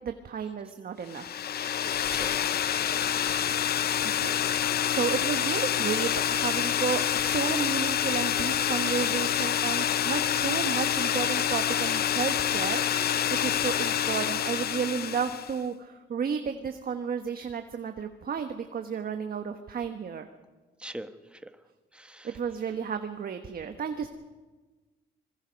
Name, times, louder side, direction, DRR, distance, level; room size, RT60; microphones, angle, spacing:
voice 1, 0.0-1.5 3.3-3.7 4.0-4.3 4.9-20.3 22.2-24.1, right 6 dB, 50° right, 6 dB, 1.3 m, -32 dB
sound 1, 1.1-15.6, left 10 dB, 55° left, 0.6 m, -27 dB
voice 2, 2.1-3.5 20.8-21.1 21.9-22.3, right 1 dB, 5° right, 9 dB, 1.3 m, -43 dB
26.0 x 21.5 x 5.3 m, 1.3 s
cardioid pair, 90°, 20 cm